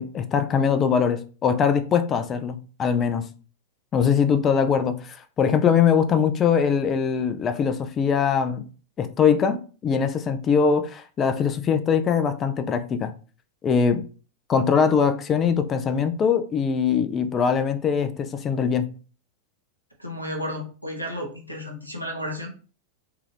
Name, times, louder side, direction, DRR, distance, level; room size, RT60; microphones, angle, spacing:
voice 1, 0.0-3.3 3.9-8.6 9.0-13.1 13.6-14.0 14.5-18.9, left 6 dB, 25° left, 0.3 m, -22 dB
voice 2, 20.0-22.5, equal, 90° right, 0.7 m, -32 dB
2.8 x 2.4 x 3.2 m
figure-of-eight pair, 90°, 0 cm